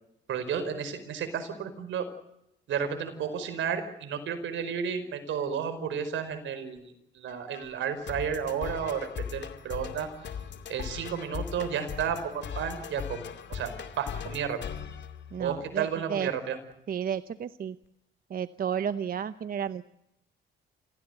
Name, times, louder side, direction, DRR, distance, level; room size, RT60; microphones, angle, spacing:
voice 1, 0.3-2.0 2.7-10.1 10.7-13.2 13.5-13.7 14.0-14.6 15.4-16.6, right 7 dB, 75° right, 9 dB, 4.9 m, -32 dB
sound 1, 7.3-15.9, left 7 dB, 60° left, 2.5 m, -40 dB
voice 2, 15.3-16.3 16.9-17.8 18.3-19.8, right 8 dB, 45° right, 13 dB, 0.8 m, -32 dB
27.5 x 16.0 x 8.1 m, 0.82 s
cardioid pair, 90°, 20 cm